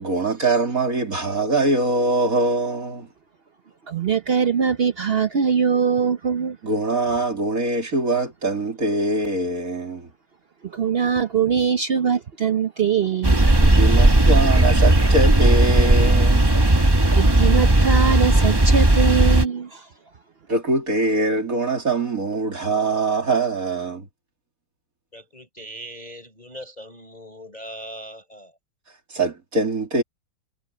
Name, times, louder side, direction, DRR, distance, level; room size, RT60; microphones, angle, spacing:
voice 1, 0.0-3.1 6.6-10.1 13.6-16.6 20.5-24.1 29.1-30.0, right 2 dB, 45° right, 3.4 m, -23 dB
voice 2, 3.9-6.6 10.6-13.4 17.1-19.9, right 6 dB, 65° right, 0.6 m, -22 dB
sound 1, 13.2-19.5, right 1 dB, 15° right, 1.1 m, -16 dB
voice 3, 25.1-28.6, right 1 dB, 20° left, 5.0 m, -40 dB
omnidirectional pair, 2.1 m